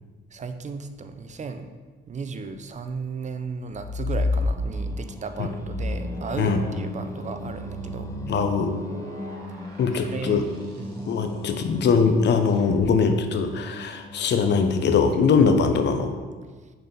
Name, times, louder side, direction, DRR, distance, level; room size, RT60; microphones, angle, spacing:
voice 1, 0.3-1.7 2.1-8.1 10.0-10.4 10.8-11.1, right 5 dB, 35° right, 8 dB, 0.6 m, -35 dB
sound 1, 3.6-5.0 5.5-11.0 12.5-12.9, left 2 dB, 55° right, 1.5 m, -31 dB
Singing, 4.3-15.5, left 2 dB, 15° left, 0.6 m, -39 dB
voice 2, 8.3-8.8 9.8-10.5 11.1-16.1, left 5 dB, 60° left, 6 dB, 0.8 m, -21 dB
6.8 x 4.2 x 3.9 m, 1.4 s
cardioid pair, 90°, 20 cm